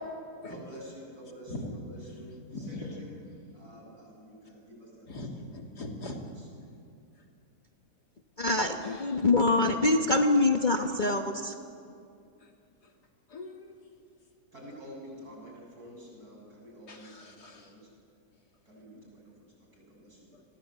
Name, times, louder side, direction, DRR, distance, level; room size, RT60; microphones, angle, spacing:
voice 1, 0.5-2.3 3.0-3.1 3.5-5.5 5.7-5.9 14.5-17.9 18.7-19.5 19.7-20.4, equal, 65° right, -1 dB, 8.0 m, -49 dB
voice 2, 1.5-1.8 2.5-3.0 5.1-6.2 7.2-7.3 8.8-9.3 12.4-12.5 12.8-12.9 13.3-13.7 16.9-17.7 20.3-20.4, left 2 dB, 75° left, 1 dB, 3.4 m, -41 dB
voice 3, 8.4-11.5, left 2 dB, 30° left, 3 dB, 1.2 m, -25 dB
29.0 x 21.0 x 8.3 m, 2.4 s
omnidirectional pair, 1.7 m